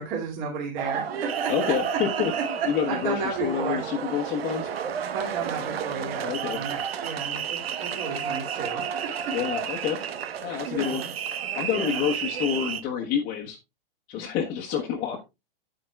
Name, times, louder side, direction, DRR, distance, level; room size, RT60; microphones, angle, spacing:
voice 1, 0.0-3.8 5.1-9.5 10.6-11.1 11.5-12.0, right 5 dB, 40° right, -3 dB, 2.4 m, -33 dB
sound 1, 0.8-12.8, right 8 dB, 90° right, 1.1 m, -32 dB
voice 2, 1.5-4.7 6.2-6.6 9.3-10.0 10.4-11.0 11.5-13.6 14.1-15.2, left 8 dB, 30° left, -1 dB, 1.2 m, -28 dB
9.2 x 8.8 x 2.3 m, 0.24 s
hypercardioid pair, 155°, 29 cm